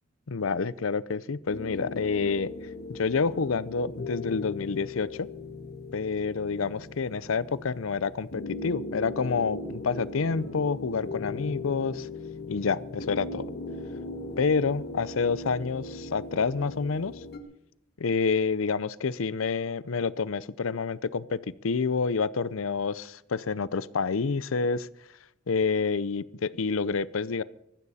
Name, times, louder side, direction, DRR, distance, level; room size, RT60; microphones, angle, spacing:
voice 1, 0.3-2.5 2.9-5.3 5.9-12.1 12.5-13.5 14.4-17.1 18.0-24.9 25.5-27.4, left 5 dB, 85° left, 19 dB, 0.6 m, -28 dB
sound 1, 1.5-17.4, left 2 dB, 55° left, 1.8 m, -39 dB
20.0 x 14.5 x 4.2 m, 0.79 s
head